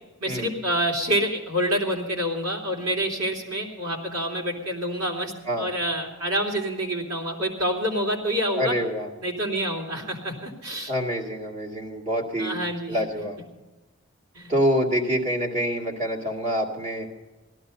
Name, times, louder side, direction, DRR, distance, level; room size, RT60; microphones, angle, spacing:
voice 1, 0.2-5.3 5.6-8.7 9.2-10.9 12.4-13.0 14.3-14.5, equal, 85° right, 0 dB, 3.5 m, -27 dB
voice 2, 8.6-9.1 10.9-12.6 12.9-13.4 14.5-17.1, equal, 35° right, -1 dB, 2.3 m, -26 dB
17.0 x 12.5 x 5.5 m, 1.2 s
head